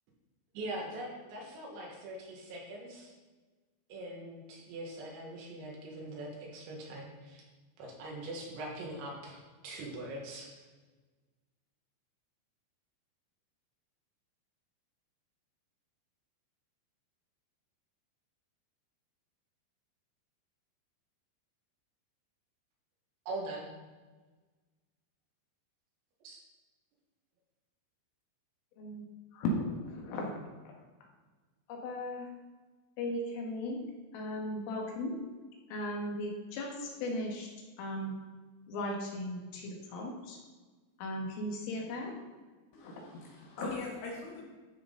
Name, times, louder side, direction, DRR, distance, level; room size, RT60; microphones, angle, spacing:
voice 1, 0.5-3.1 3.9-7.5 7.8-10.5 23.3-23.7 26.2-26.4, right 1 dB, 70° right, -2 dB, 3.8 m, -42 dB
voice 2, 29.3-30.7 31.7-32.3 33.0-35.2 35.7-37.5 37.8-38.2 38.7-40.4 41.0-42.2 42.8-43.0, left 1 dB, 85° left, -1 dB, 4.3 m, -37 dB
voice 3, 42.7-44.5, left 3 dB, 70° left, -1 dB, 2.8 m, -41 dB
12.5 x 6.1 x 3.9 m, 1.3 s
omnidirectional pair, 5.7 m